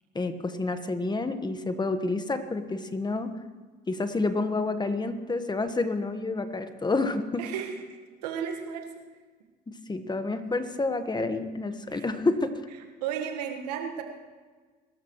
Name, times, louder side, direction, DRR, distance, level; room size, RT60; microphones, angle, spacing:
voice 1, 0.1-3.3 3.9-7.4 9.7-12.5, left 3 dB, 20° left, 9 dB, 1.4 m, -29 dB
voice 2, 7.4-7.7 8.2-8.8 11.9-12.0 13.0-14.0, right 8 dB, 90° right, 3 dB, 1.6 m, -33 dB
23.0 x 13.0 x 3.2 m, 1.4 s
hypercardioid pair, 65°, 20 cm